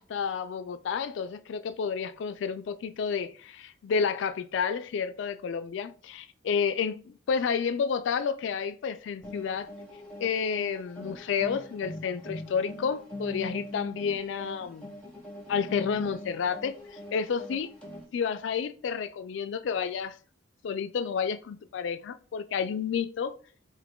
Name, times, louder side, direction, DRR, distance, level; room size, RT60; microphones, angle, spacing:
voice 1, 0.0-9.7 10.2-14.9 15.5-17.7 18.1-20.2 20.6-23.4, left 6 dB, 70° left, 0.3 m, -30 dB
sound 1, 9.2-18.0, left 1 dB, 5° left, 0.8 m, -42 dB
4.8 x 2.1 x 2.2 m
head